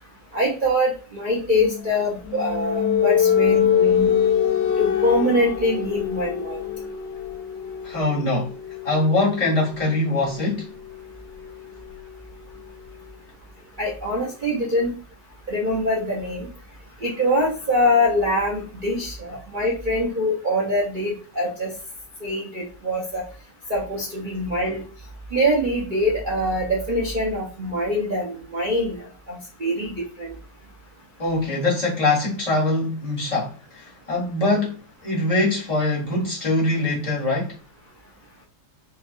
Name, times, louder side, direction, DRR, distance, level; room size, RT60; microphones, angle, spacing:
voice 1, 0.3-4.1 4.8-6.6 13.8-14.9 15.5-16.5 17.0-21.7 22.2-23.2 23.7-24.8 25.3-29.0 29.3-30.3, left 1 dB, 55° right, 0.5 m, -24 dB
sound 1, 1.5-13.0, left 8 dB, 70° left, 1.0 m, -25 dB
voice 2, 7.8-8.5 8.8-10.7 31.2-37.5, left 2 dB, 25° left, 1.0 m, -23 dB
4.5 x 2.3 x 2.4 m
omnidirectional pair, 2.0 m